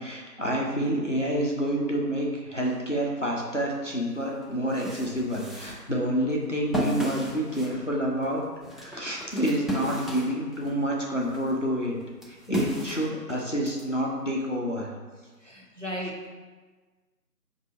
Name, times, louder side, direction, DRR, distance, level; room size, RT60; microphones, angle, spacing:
voice 1, 0.0-8.4 8.8-12.0 12.3-14.9, equal, 50° left, -2 dB, 0.5 m, -28 dB
sound 1, 3.9-4.0 4.4-10.8 11.2-13.8, equal, ahead, 0.5 m, -35 dB
voice 2, 15.4-16.3, equal, 50° right, -3 dB, 0.7 m, -38 dB
4.2 x 2.7 x 4.1 m, 1.4 s
figure-of-eight pair, 175°, 49 cm